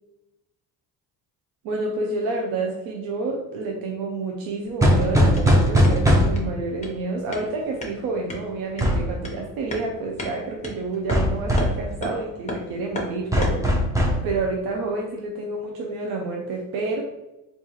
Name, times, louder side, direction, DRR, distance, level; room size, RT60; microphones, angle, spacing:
voice 1, 1.6-13.8 14.2-17.0, right 3 dB, 80° right, 0 dB, 0.7 m, -29 dB
sound 1, 4.6-13.7, left 1 dB, 20° left, 0.9 m, -37 dB
sound 2, 4.8-6.6 8.8-9.1 11.1-11.8 13.3-14.3, equal, 10° right, 0.6 m, -19 dB
3.7 x 2.6 x 3.0 m, 0.98 s
cardioid pair, 120°, 38 cm